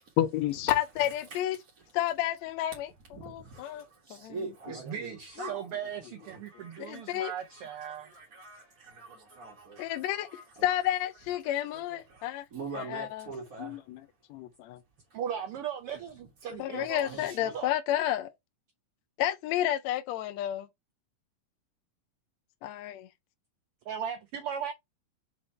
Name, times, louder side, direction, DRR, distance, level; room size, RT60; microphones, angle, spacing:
voice 1, 0.2-1.6 1.9-2.9 3.2-3.8 4.2-4.3 5.4-5.5 6.8-7.3 9.8-12.4 12.7-13.2 13.6-14.0 14.3-14.8 16.6-18.3 19.2-20.7 22.6-23.1, left 12 dB, 75° left, 1.7 m, -31 dB
voice 2, 3.1-5.7 6.2-7.3 7.9-10.8 11.7-13.8 16.7-17.5, right 3 dB, 35° right, 1.8 m, -44 dB
voice 3, 4.7-8.1 15.1-17.7 23.8-24.7, right 8 dB, 85° right, 1.2 m, -38 dB
5.5 x 4.3 x 4.3 m
omnidirectional pair, 3.5 m